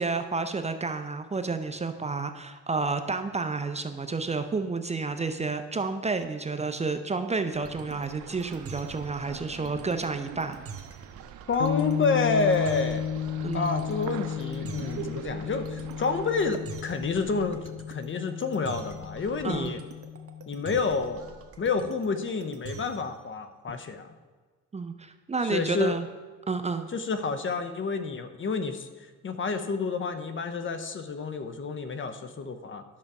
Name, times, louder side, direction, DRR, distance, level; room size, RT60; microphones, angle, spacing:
voice 1, 0.0-10.6 13.4-13.8 19.4-19.7 24.7-26.0 26.5-26.9, right 4 dB, 20° right, 8 dB, 0.7 m, -30 dB
sound 1, 7.5-23.2, right 6 dB, 50° right, 1.2 m, -44 dB
sound 2, 7.6-16.6, right 12 dB, 80° right, 0.5 m, -44 dB
voice 2, 11.5-13.1 13.5-19.8 20.5-21.3 21.6-24.1 25.4-26.0 26.9-32.8, left 4 dB, 40° left, 9 dB, 0.9 m, -29 dB
sound 3, 11.6-21.3, left 9 dB, 80° left, 0.8 m, -34 dB
10.5 x 6.5 x 4.8 m, 1.4 s
cardioid pair, 90°, 30 cm